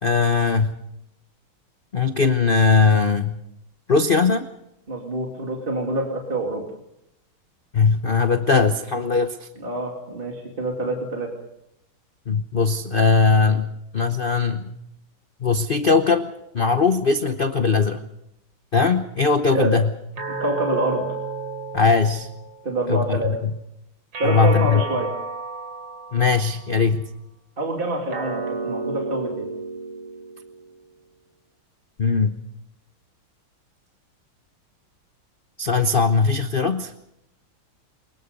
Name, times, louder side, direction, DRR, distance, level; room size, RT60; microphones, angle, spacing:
voice 1, 0.0-0.7 1.9-3.4 3.9-4.5 7.7-9.5 12.3-14.7 15.4-18.0 18.7-19.9 21.7-22.3 22.9-23.5 24.2-24.8 26.1-27.1 32.0-32.4 35.6-36.9, left 4 dB, 65° left, 9 dB, 0.5 m, -20 dB
voice 2, 4.9-6.6 9.6-11.3 19.5-19.7 20.3-21.0 22.6-23.3 24.2-25.1 27.6-29.5, right 2 dB, 25° right, 1 dB, 2.8 m, -26 dB
sound 1, 20.2-22.8 24.1-26.7 28.1-30.7, right 4 dB, 85° right, 3.7 m, -32 dB
23.5 x 21.0 x 5.3 m, 0.81 s
omnidirectional pair, 2.3 m